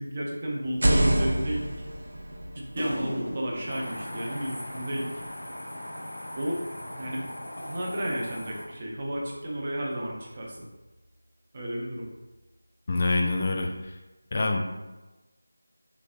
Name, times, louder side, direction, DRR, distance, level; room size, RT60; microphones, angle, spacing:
voice 1, 0.0-1.7 2.6-5.1 6.4-6.6 7.0-7.2 7.7-10.7 11.5-12.1, equal, 30° right, -3 dB, 0.6 m, -32 dB
sound 1, 0.7-4.5, right 1 dB, 70° right, 0.6 m, -28 dB
sound 2, 2.8-5.4 6.9-9.0, equal, 65° left, 1.0 m, -40 dB
sound 3, 3.7-8.7, equal, 85° left, 0.7 m, -39 dB
voice 2, 12.9-13.9 14.3-14.6, left 2 dB, 35° left, 2 dB, 0.3 m, -26 dB
3.4 x 3.0 x 2.5 m, 1.1 s
figure-of-eight pair, 170°, 0 cm